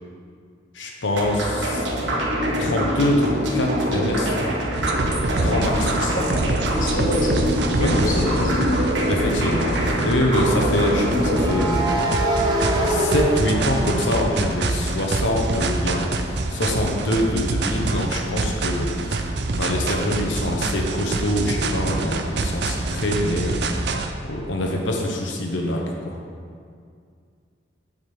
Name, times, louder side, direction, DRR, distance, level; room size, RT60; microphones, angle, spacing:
voice 1, 0.7-1.9 2.6-4.3 5.4-5.9 7.8-8.4 9.1-12.3 12.8-24.0 24.3-26.2, left 1 dB, 80° left, 0 dB, 1.0 m, -24 dB
sound 1, 1.1-11.6, equal, 75° right, 1.6 m, -24 dB
sound 2, 4.7-24.1, right 2 dB, 60° right, 0.6 m, -26 dB
voice 2, 6.7-7.6 8.1-8.8, left 1 dB, 45° left, -2 dB, 1.2 m, -27 dB
sound 3, 7.7-7.8 10.9-14.8 15.2-18.8, right 1 dB, 20° right, 1.0 m, -27 dB
8.7 x 5.3 x 5.9 m, 2.2 s
head